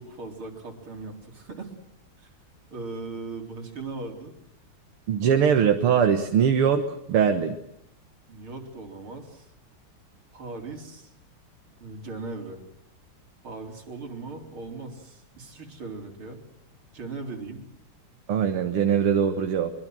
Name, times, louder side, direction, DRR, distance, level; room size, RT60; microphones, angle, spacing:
voice 1, 0.0-1.7 2.7-4.3 8.3-9.5 10.3-11.1 11.8-12.6 13.4-16.4 16.9-17.7, right 3 dB, 70° right, 3 dB, 4.8 m, -38 dB
voice 2, 5.1-7.6 18.3-19.7, right 7 dB, 90° right, 6 dB, 2.3 m, -22 dB
24.5 x 23.5 x 7.9 m, 0.76 s
omnidirectional pair, 2.4 m